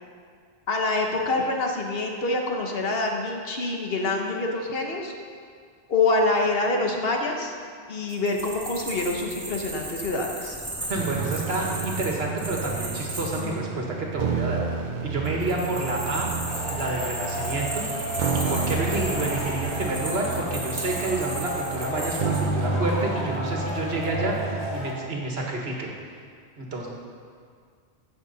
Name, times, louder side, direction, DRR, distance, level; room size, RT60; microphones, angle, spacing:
voice 1, 0.7-5.1 5.9-7.5 7.9-10.6 13.3-13.6, left 2 dB, 60° left, 1 dB, 1.3 m, -26 dB
sound 1, 8.1-13.4 15.2-22.4, right 1 dB, 10° right, 1.9 m, -35 dB
voice 2, 10.9-14.6 15.0-16.3 16.7-17.8 18.3-25.9 26.6-26.9, right 2 dB, 70° right, -1 dB, 1.7 m, -29 dB
sound 2, 11.0-24.7, right 5 dB, 50° right, 0.7 m, -31 dB
Male speech man speaking / Shout / Clapping, 16.5-24.9, equal, 35° left, 2.0 m, -34 dB
15.0 x 6.6 x 4.1 m, 2.1 s
omnidirectional pair, 1.1 m